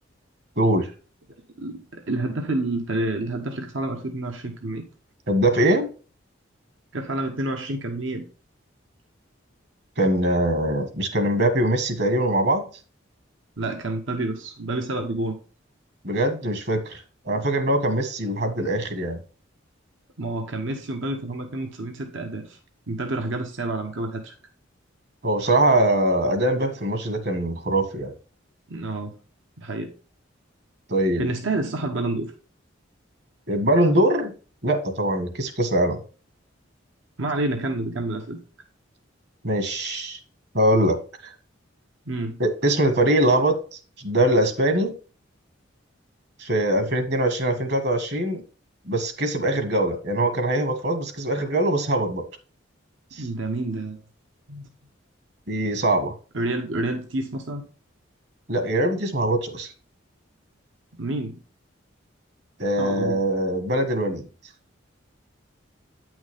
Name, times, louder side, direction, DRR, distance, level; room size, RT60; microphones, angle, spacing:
voice 1, 0.6-0.9 5.3-5.9 10.0-12.7 16.0-19.2 25.2-28.1 30.9-31.3 33.5-34.3 34.6-36.0 39.4-40.2 40.5-41.0 41.2-41.3 42.4-43.6 44.0-44.9 46.4-48.4 48.9-52.2 53.2-53.3 55.5-56.1 58.5-59.7 62.6-64.3, right 1 dB, 55° right, 7 dB, 1.7 m, -22 dB
voice 2, 1.6-4.8 6.9-8.3 13.6-15.3 17.3-17.4 20.2-22.6 22.9-24.3 28.7-29.1 29.6-29.9 31.2-32.3 37.2-38.4 42.1-42.4 53.2-54.0 54.5-54.7 56.3-57.6 60.9-61.4 62.8-63.2, right 2 dB, 75° right, 4 dB, 1.1 m, -29 dB
9.2 x 6.2 x 3.6 m, 0.36 s
head